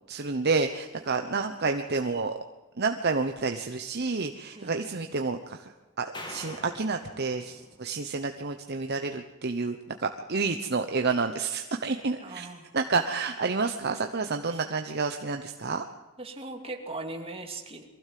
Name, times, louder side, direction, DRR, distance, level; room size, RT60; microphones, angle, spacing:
voice 1, 0.1-2.4 2.8-5.7 6.0-12.5 12.7-15.8, right 4 dB, 50° right, 6 dB, 1.0 m, -29 dB
voice 2, 4.6-5.0 12.2-12.7 14.5-14.6 16.2-17.8, right 2 dB, 25° right, 2 dB, 2.8 m, -39 dB
sound 1, 6.1-8.5, left 1 dB, 20° left, 2.7 m, -45 dB
23.0 x 15.5 x 7.7 m, 1.2 s
head